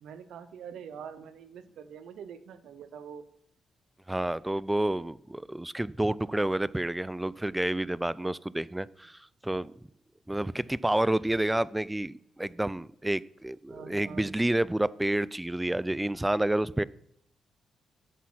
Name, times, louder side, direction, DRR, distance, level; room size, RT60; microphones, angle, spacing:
voice 1, 0.0-3.2 13.7-14.3, right 7 dB, 70° right, 13 dB, 0.7 m, -45 dB
voice 2, 4.1-9.7 10.3-16.8, right 1 dB, 15° right, 21 dB, 0.4 m, -29 dB
9.3 x 6.2 x 5.8 m, 0.71 s
hypercardioid pair, 40°, 0 cm